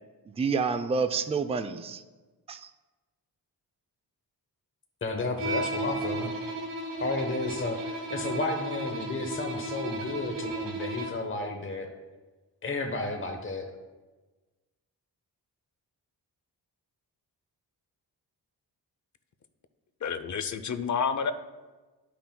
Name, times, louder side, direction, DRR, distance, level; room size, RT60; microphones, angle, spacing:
voice 1, 0.2-2.0 2.5-2.7, right 5 dB, 15° right, 9 dB, 0.4 m, -29 dB
voice 2, 5.0-6.3 7.0-11.9 12.6-13.7, left 2 dB, 30° left, 4 dB, 1.0 m, -32 dB
Bowed string instrument, 5.4-11.3, right 1 dB, 85° right, 1.7 m, -34 dB
voice 3, 20.0-21.3, left 6 dB, 45° left, 11 dB, 0.6 m, -29 dB
12.0 x 5.9 x 2.2 m, 1.2 s
cardioid pair, 75°, 41 cm